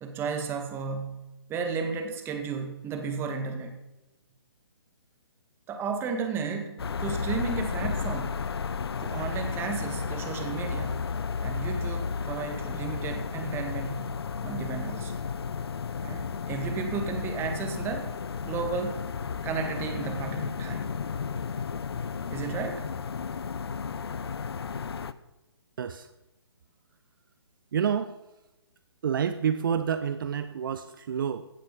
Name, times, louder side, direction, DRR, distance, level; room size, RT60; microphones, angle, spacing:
voice 1, 0.0-1.2 1.5-3.8 5.7-8.4 9.0-11.0 11.4-14.1 14.4-15.2 16.0-18.1 18.4-19.1 19.4-20.9 22.3-22.9, right 5 dB, 15° right, 5 dB, 1.8 m, -33 dB
sound 1, 6.8-25.1, left 5 dB, 65° left, 0.8 m, -33 dB
voice 2, 25.8-26.1 27.7-28.2 29.0-31.5, right 8 dB, 50° right, 11 dB, 0.7 m, -28 dB
16.0 x 7.6 x 7.3 m, 0.98 s
figure-of-eight pair, 135°, 14 cm